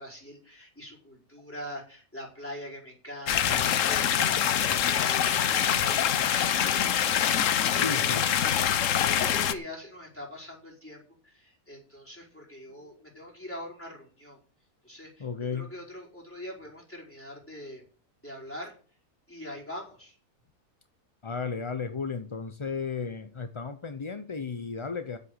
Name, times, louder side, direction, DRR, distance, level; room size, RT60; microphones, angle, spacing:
voice 1, 0.0-7.1 7.4-8.3 8.7-14.4 14.8-17.8 18.2-18.7 19.3-20.1, equal, 10° left, -3 dB, 4.9 m, -43 dB
sound 1, 3.3-9.5, left 9 dB, 65° left, 1.1 m, -25 dB
voice 2, 7.7-8.5 9.5-9.6 12.7-13.0 15.2-15.7 21.2-25.2, left 5 dB, 35° left, 9 dB, 0.5 m, -34 dB
9.5 x 8.0 x 8.0 m, 0.41 s
omnidirectional pair, 1.5 m